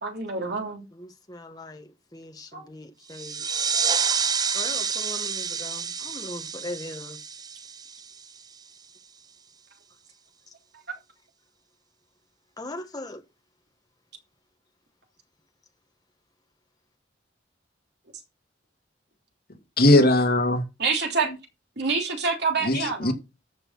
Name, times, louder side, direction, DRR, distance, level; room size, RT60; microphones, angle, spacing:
voice 1, 0.0-0.8 2.5-2.7 5.1-5.2 20.8-21.3 21.8-23.1, right 4 dB, 65° right, 3.2 m, -27 dB
voice 2, 0.9-3.5 4.5-7.2 12.6-13.2, left 1 dB, 20° left, 1.8 m, -40 dB
sound 1, 3.1-8.4, right 6 dB, 20° right, 0.6 m, -28 dB
voice 3, 19.8-20.6 22.6-23.1, left 1 dB, 55° left, 2.5 m, -19 dB
14.0 x 5.5 x 5.7 m
head